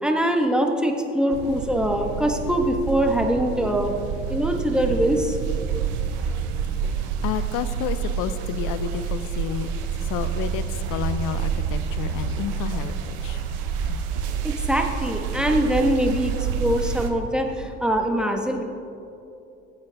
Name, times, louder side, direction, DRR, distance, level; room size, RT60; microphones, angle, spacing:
voice 1, 0.0-3.9 4.3-5.4 14.4-18.6, equal, ahead, 3 dB, 1.3 m, -23 dB
sound 1, 1.3-17.1, right 7 dB, 80° right, 0.9 m, -28 dB
voice 2, 7.0-9.7 10.0-10.6 10.9-13.4 13.9-14.0, left 9 dB, 65° left, 12 dB, 0.7 m, -30 dB
15.5 x 8.3 x 3.5 m, 2.8 s
hypercardioid pair, 60°, 32 cm